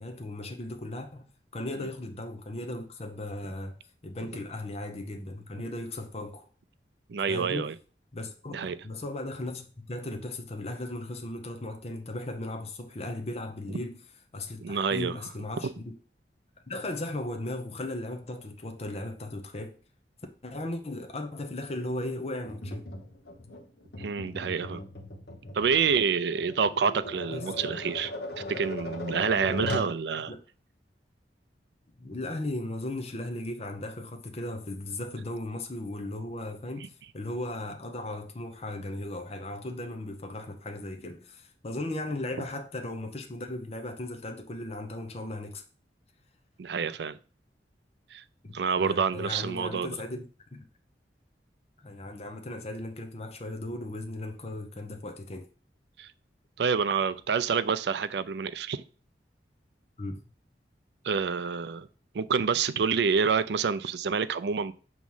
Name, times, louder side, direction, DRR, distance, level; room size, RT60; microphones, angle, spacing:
voice 1, 0.0-3.8 4.0-6.5 7.3-7.7 8.1-14.0 14.3-15.9 16.7-19.8 20.4-22.8 27.3-27.6 30.3-30.4 32.0-45.6 48.4-50.2 50.5-50.6 51.8-55.5 60.0-60.2, left 1 dB, 35° left, 0.7 m, -37 dB
voice 2, 7.1-7.7 8.5-8.8 14.6-15.1 15.6-15.7 24.0-24.8 25.5-28.1 28.5-30.3 46.6-47.2 48.1-48.2 48.5-49.9 56.0-56.1 56.6-58.8 61.0-61.9 62.1-64.7, right 6 dB, 70° right, 0.4 m, -27 dB
Tap, 22.4-30.0, left 2 dB, 60° left, 1.0 m, -38 dB
6.1 x 3.1 x 5.5 m
head